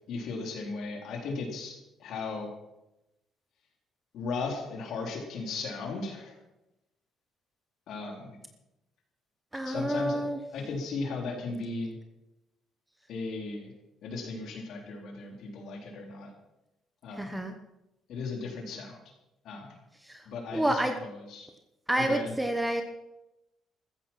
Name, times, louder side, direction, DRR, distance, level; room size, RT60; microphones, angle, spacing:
voice 1, 0.1-2.5 4.1-6.3 7.9-8.3 9.7-10.2 10.5-12.0 13.1-13.7 14.0-16.3 17.0-17.3 18.1-19.0 19.4-19.8 20.3-21.5 22.0-22.3, left 4 dB, 60° left, 1 dB, 4.0 m, -36 dB
voice 2, 9.5-10.4 17.1-17.5 20.1-20.2 20.5-21.0 21.9-22.8, right 1 dB, 5° right, 6 dB, 1.0 m, -28 dB
15.0 x 14.0 x 5.8 m, 0.93 s
cardioid pair, 170°, 0 cm